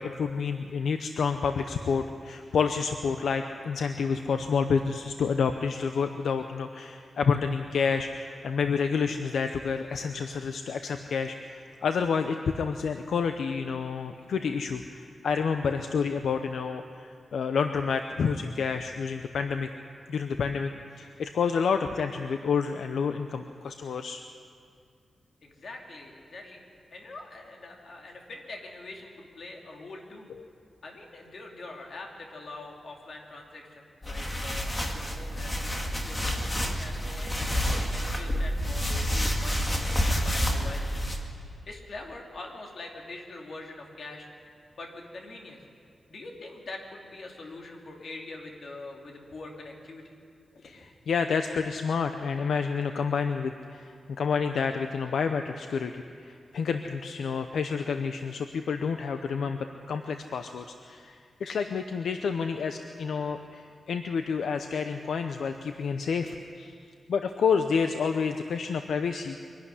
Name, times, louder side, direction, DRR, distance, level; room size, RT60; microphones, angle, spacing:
voice 1, 0.0-19.7 20.1-20.7 21.0-24.2 50.6-66.7 67.1-69.4, left 5 dB, 75° left, 7 dB, 0.7 m, -29 dB
voice 2, 25.4-26.6 26.9-30.3 30.8-41.1 41.7-44.3 44.7-45.6 46.1-50.2 50.5-50.7, left 2 dB, 50° left, 0 dB, 2.7 m, -44 dB
sound 1, 34.0-41.2, equal, 15° left, 1.9 m, -29 dB
23.5 x 12.0 x 9.8 m, 2.2 s
wide cardioid pair, 170°, 0 cm